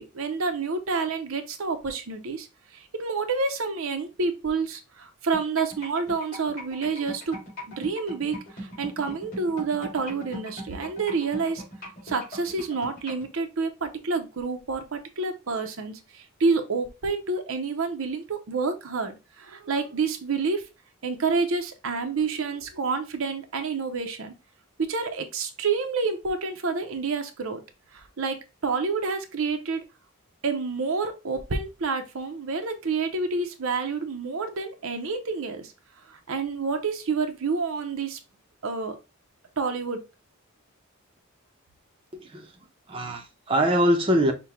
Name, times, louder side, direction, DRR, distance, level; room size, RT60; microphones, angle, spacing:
voice 1, 0.0-2.5 2.7-7.4 7.7-11.6 12.0-20.7 21.0-24.3 24.9-27.6 27.9-29.8 30.4-35.7 36.1-38.2 38.6-39.0 39.6-40.0, right 4 dB, 65° right, 0.7 m, -28 dB
sound 1, 5.3-13.3, left 1 dB, 40° left, 2.9 m, -39 dB
voice 2, 42.1-42.5 42.9-44.3, equal, 25° right, 0.7 m, -23 dB
5.8 x 2.2 x 3.5 m
head